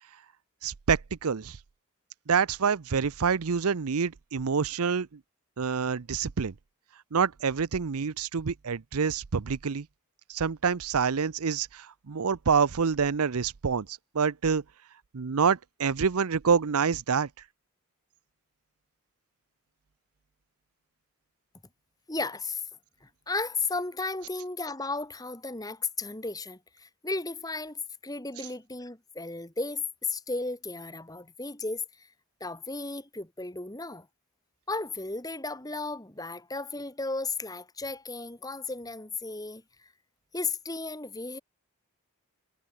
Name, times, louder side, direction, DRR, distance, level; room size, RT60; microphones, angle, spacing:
voice 1, 0.6-1.6 2.3-5.2 5.6-6.5 7.1-9.9 10.3-14.6 15.1-17.3, right 6 dB, 80° right, 0.6 m, -27 dB
voice 2, 22.1-22.6 23.0-32.1 32.4-34.1 34.7-39.9 40.3-41.4, left 3 dB, 15° left, 1.8 m, -34 dB
head